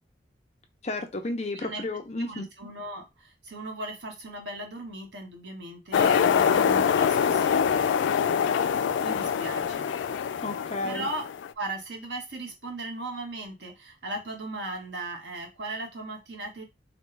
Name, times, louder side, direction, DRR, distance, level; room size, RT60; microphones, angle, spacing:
voice 1, 0.8-2.5 10.4-11.1, left 2 dB, 35° left, 5 dB, 0.6 m, -32 dB
voice 2, 2.2-10.2 10.8-11.2 11.6-16.6, right 2 dB, 75° right, 2 dB, 1.2 m, -38 dB
sound 1, 5.9-11.5, left 7 dB, 90° left, 0.3 m, -24 dB
4.2 x 2.2 x 3.2 m, 0.23 s
head